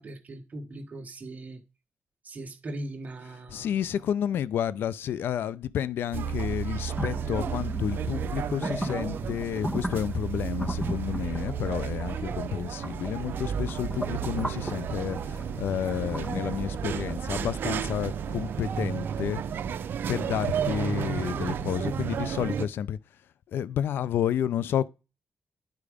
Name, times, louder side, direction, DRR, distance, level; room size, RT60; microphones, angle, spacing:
voice 1, 0.0-1.6 2.2-3.7, right 1 dB, 45° right, 1.3 m, -39 dB
voice 2, 3.5-19.4 20.1-23.0 23.5-24.9, left 9 dB, 80° left, 0.5 m, -30 dB
sound 1, 6.1-22.7, right 7 dB, 70° right, 0.6 m, -32 dB
sound 2, 7.0-19.8, equal, 15° left, 1.7 m, -38 dB
10.5 x 4.7 x 5.0 m
cardioid pair, 75°, 4 cm